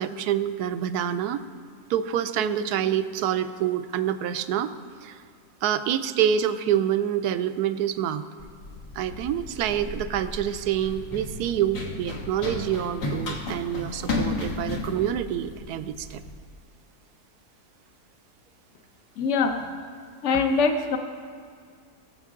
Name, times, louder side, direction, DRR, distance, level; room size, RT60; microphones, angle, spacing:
voice 1, 0.0-1.4 1.9-4.7 5.0-5.2 5.6-8.2 9.0-16.2, right 10 dB, 80° right, 11 dB, 1.1 m, -27 dB
Run, 8.4-16.3, left 3 dB, 85° left, 1.9 m, -34 dB
voice 2, 19.2-19.6 20.2-21.0, left 4 dB, 55° left, 6 dB, 1.1 m, -23 dB
20.5 x 7.3 x 3.7 m, 2.1 s
omnidirectional pair, 1.7 m